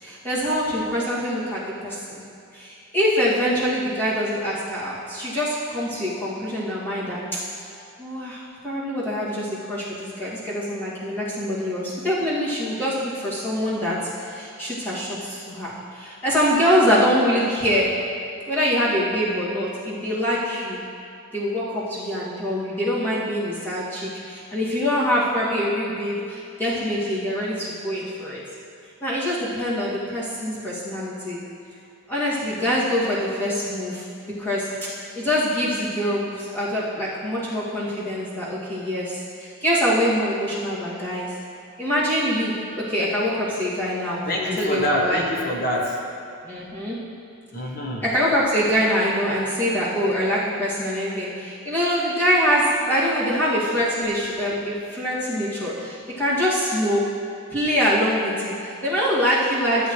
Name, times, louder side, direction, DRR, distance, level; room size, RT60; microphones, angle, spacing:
voice 1, 0.0-2.2 2.5-7.4 8.0-17.9 18.5-20.8 21.3-28.4 29.0-31.4 32.1-41.3 41.8-44.2 44.6-45.2 46.4-47.0 48.0-57.1 57.5-59.9, equal, 10° left, -10 dB, 2.2 m, -24 dB
voice 2, 44.3-46.0 47.5-48.0, left 1 dB, 40° left, -2 dB, 1.0 m, -25 dB
14.5 x 8.2 x 3.2 m, 2.5 s
head